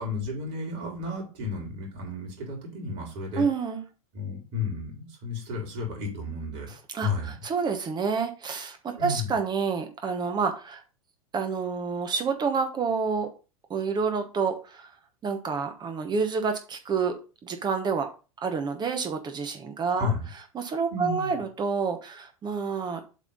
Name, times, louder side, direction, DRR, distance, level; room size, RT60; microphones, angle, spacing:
voice 1, 0.0-3.4 4.1-6.7 7.0-7.4 9.0-9.3 20.0-20.3 20.9-21.3, left 3 dB, 50° right, 0 dB, 3.8 m, -32 dB
voice 2, 3.4-3.8 6.7-10.8 11.3-13.3 13.7-14.9 15.2-17.1 17.4-18.1 18.4-20.1 20.5-23.0, right 5 dB, 25° right, 6 dB, 1.1 m, -28 dB
7.5 x 3.6 x 5.4 m, 0.33 s
figure-of-eight pair, 90°, 18 cm